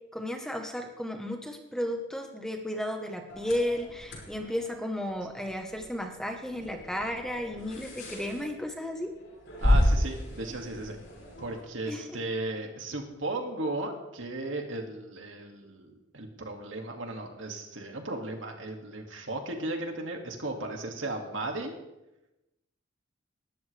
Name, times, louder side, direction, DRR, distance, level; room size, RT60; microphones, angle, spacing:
voice 1, 0.1-9.1 11.9-12.2, left 1 dB, 5° left, 4 dB, 1.2 m, -34 dB
sound 1, 3.3-11.6, left 1 dB, 75° left, 6.1 m, -32 dB
voice 2, 9.6-11.0 11.4-21.7, right 2 dB, 75° right, 2 dB, 2.3 m, -35 dB
20.0 x 13.5 x 3.5 m, 0.96 s
head